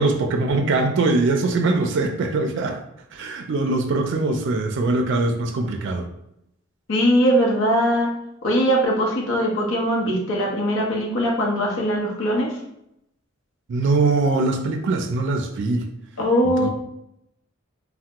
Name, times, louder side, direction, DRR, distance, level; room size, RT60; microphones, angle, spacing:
voice 1, 0.0-2.8 3.1-6.1 13.7-15.9 16.6-16.7, right 3 dB, 60° right, 4 dB, 0.4 m, -22 dB
voice 2, 6.9-8.1 8.4-12.6 16.2-16.7, equal, 65° left, -1 dB, 0.8 m, -21 dB
3.3 x 2.1 x 2.9 m, 0.80 s
head